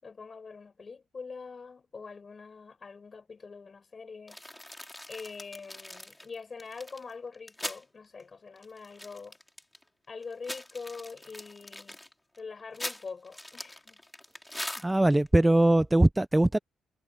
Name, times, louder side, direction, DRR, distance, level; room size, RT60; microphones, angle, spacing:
voice 1, 0.0-4.4 5.1-9.4 10.1-12.0 12.4-14.0, left 4 dB, 35° left, 6.8 m, -44 dB
sound 1, 4.3-7.8 8.2-8.3 8.6-9.8 10.2-15.3, left 1 dB, 10° left, 4.4 m, -42 dB
voice 2, 14.8-16.6, right 1 dB, 10° right, 0.4 m, -21 dB
cardioid pair, 90°, 0 cm